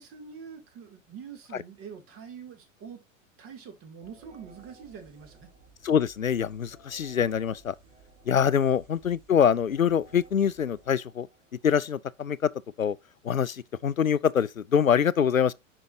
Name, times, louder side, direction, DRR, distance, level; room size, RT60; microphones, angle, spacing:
voice 1, 0.0-3.0 3.4-5.5 8.4-8.6, right 7 dB, 35° right, 2.4 m, -45 dB
sound 1, 4.0-11.7, right 3 dB, 65° right, 3.5 m, -56 dB
voice 2, 5.8-7.7 8.3-11.3 11.6-12.5 12.8-13.0 13.2-15.5, left 8 dB, 90° left, 0.5 m, -24 dB
10.0 x 5.4 x 2.6 m
figure-of-eight pair, 90°, 39 cm